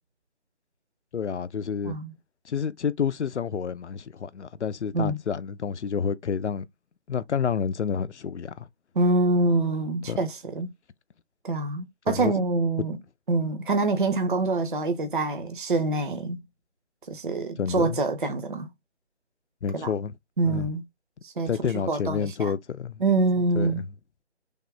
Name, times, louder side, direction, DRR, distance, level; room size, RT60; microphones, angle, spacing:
voice 1, 1.1-2.0 2.5-6.7 7.1-8.7 10.1-10.2 12.1-12.3 12.8-12.9 17.6-18.0 19.6-20.2 20.4-20.7 21.5-23.0 23.6-23.8, left 7 dB, 85° left, 0.5 m, -29 dB
voice 2, 9.0-10.7 11.4-13.0 13.3-16.4 17.1-18.7 19.7-19.9 20.4-20.8 21.2-22.5 23.0-23.8, right 3 dB, 50° right, 0.6 m, -25 dB
3.5 x 2.1 x 3.3 m
figure-of-eight pair, 155°, 34 cm